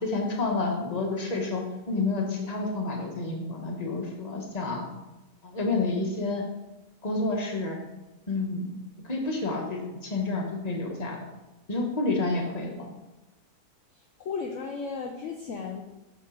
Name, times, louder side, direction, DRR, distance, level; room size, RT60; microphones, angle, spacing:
voice 1, 0.0-4.8 5.4-6.4 7.0-7.8 8.3-8.7 9.0-11.3 11.7-12.9, left 3 dB, 25° left, 0 dB, 1.4 m, -29 dB
voice 2, 13.9-15.8, left 5 dB, 60° left, 2 dB, 1.0 m, -35 dB
7.4 x 4.4 x 6.3 m, 1.0 s
omnidirectional pair, 1.6 m